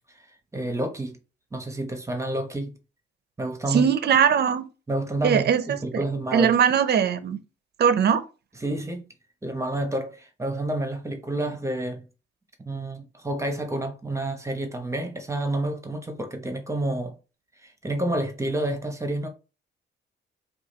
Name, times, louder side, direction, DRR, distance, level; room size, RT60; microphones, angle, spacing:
voice 1, 0.5-1.2 1.5-2.8 3.4-3.9 4.9-6.5 8.6-9.0 9.4-12.0 12.6-17.1 17.6-19.3, right 1 dB, 15° right, 1.0 m, -29 dB
voice 2, 3.7-4.6 5.2-6.0 6.3-7.4 7.8-8.2, right 7 dB, 55° right, 0.7 m, -20 dB
5.0 x 2.5 x 3.9 m
cardioid pair, 90°, 20 cm